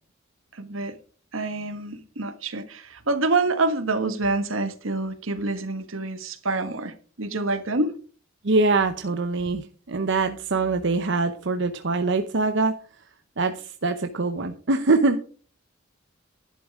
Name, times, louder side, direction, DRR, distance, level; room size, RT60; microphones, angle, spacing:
voice 1, 0.5-0.9 1.3-7.9, right 3 dB, 80° right, 1.5 m, -27 dB
voice 2, 8.4-12.7 13.4-15.2, right 3 dB, 65° right, 0.9 m, -23 dB
11.5 x 11.0 x 3.7 m
head